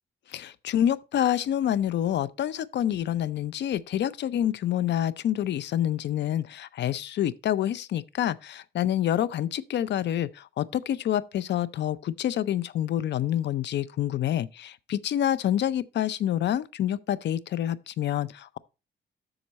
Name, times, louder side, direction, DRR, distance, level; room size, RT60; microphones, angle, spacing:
voice 1, 0.3-18.6, left 11 dB, 60° left, 0.6 m, -27 dB
7.9 x 6.5 x 4.1 m
cardioid pair, 90°, 20 cm